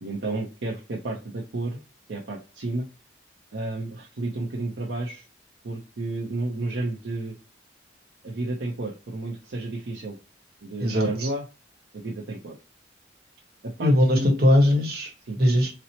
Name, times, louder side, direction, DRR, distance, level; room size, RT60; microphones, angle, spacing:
voice 1, 0.0-1.8 2.1-2.9 3.5-5.3 5.6-7.4 8.2-10.2 10.6-11.5 11.9-12.6 13.6-14.4 15.2-15.4, right 2 dB, 70° right, -2 dB, 0.5 m, -31 dB
voice 2, 10.8-11.3 13.8-15.1 15.4-15.7, left 1 dB, 55° right, 2 dB, 0.9 m, -20 dB
4.1 x 2.0 x 2.7 m, 0.33 s
head